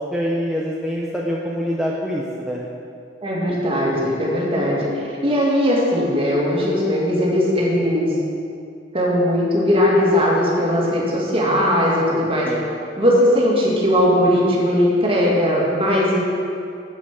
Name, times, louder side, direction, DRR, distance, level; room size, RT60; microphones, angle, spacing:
voice 1, 0.1-2.6 12.5-12.6, equal, 5° right, -5 dB, 0.8 m, -25 dB
voice 2, 3.2-8.1 8.9-12.5 13.0-16.2, equal, 30° right, -4 dB, 2.2 m, -19 dB
7.7 x 7.4 x 7.5 m, 2.5 s
head